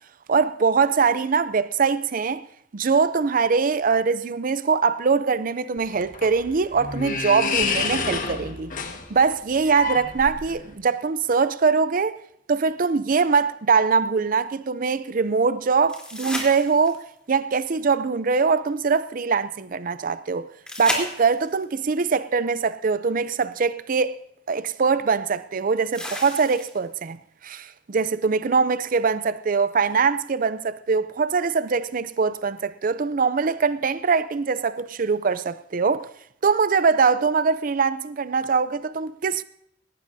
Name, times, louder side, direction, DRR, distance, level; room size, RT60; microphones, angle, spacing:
voice 1, 0.3-2.4 2.7-8.7 9.1-12.1 12.5-20.5 20.8-24.2 24.5-36.1 36.4-39.4, right 5 dB, 50° right, 0.5 m, -22 dB
sound 1, 5.8-10.7, left 4 dB, 45° left, 1.6 m, -29 dB
sound 2, 15.9-17.2 20.7-21.6 23.5-23.6 25.9-27.0 29.9-30.0, left 1 dB, 5° left, 3.5 m, -32 dB
18.5 x 18.5 x 2.7 m
head